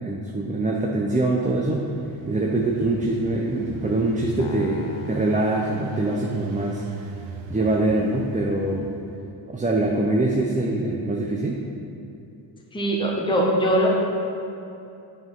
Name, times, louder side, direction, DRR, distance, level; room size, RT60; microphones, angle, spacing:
voice 1, 0.0-1.9 2.3-6.8 7.5-8.9 9.5-11.6, right 2 dB, 15° right, -1 dB, 0.7 m, -24 dB
Engine, 1.4-9.3, right 6 dB, 75° right, 0.9 m, -39 dB
sound 1, 4.4-6.8, left 4 dB, 60° left, 1.0 m, -37 dB
voice 2, 12.7-13.9, equal, 10° left, -2 dB, 1.3 m, -21 dB
7.9 x 6.0 x 5.4 m, 2.8 s
cardioid pair, 75°, 48 cm